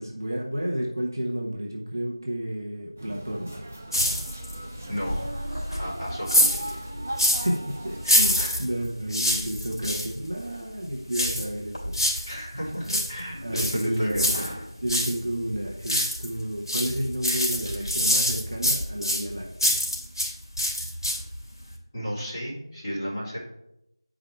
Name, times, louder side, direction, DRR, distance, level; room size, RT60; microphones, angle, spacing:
voice 1, 0.0-3.5 7.4-12.3 12.8-13.0 13.4-14.4 14.8-19.8, right 1 dB, 45° right, -2 dB, 1.3 m, -31 dB
sound 1, 3.0-8.5, right 1 dB, 20° right, 0.4 m, -37 dB
sound 2, 3.9-4.6 5.0-7.6 8.0-10.1 11.1-12.3 12.7-15.2 15.5-16.4 16.7-20.3 20.6-21.4 21.7-21.8, left 1 dB, 50° left, 2.8 m, -25 dB
voice 2, 4.9-5.2 5.8-6.7 8.3-8.6 12.2-14.2 20.7-20.9 21.9-23.4, equal, 10° left, -16 dB, 2.6 m, -33 dB
9.4 x 5.0 x 3.4 m, 0.85 s
figure-of-eight pair, 175°, 3 cm